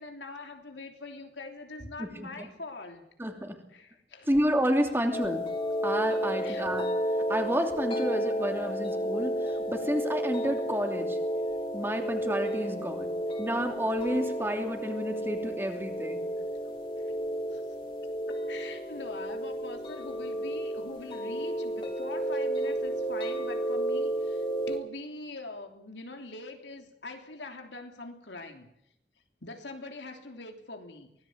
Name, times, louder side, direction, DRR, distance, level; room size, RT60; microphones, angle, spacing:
voice 1, 0.0-3.0 3.7-4.3 6.4-6.6 16.6-16.8 17.0-17.1 17.5-17.7 18.5-28.7 29.4-31.1, left 3 dB, 90° left, 4 dB, 3.2 m, -43 dB
voice 2, 2.0-2.5 3.2-3.6 4.3-5.4 5.8-6.9 7.3-11.2 11.7-13.1 13.4-16.3, equal, 15° right, 4 dB, 2.9 m, -30 dB
sound 1, 5.1-24.8, equal, 30° left, 3.4 m, -32 dB
24.0 x 17.5 x 8.0 m, 0.79 s
head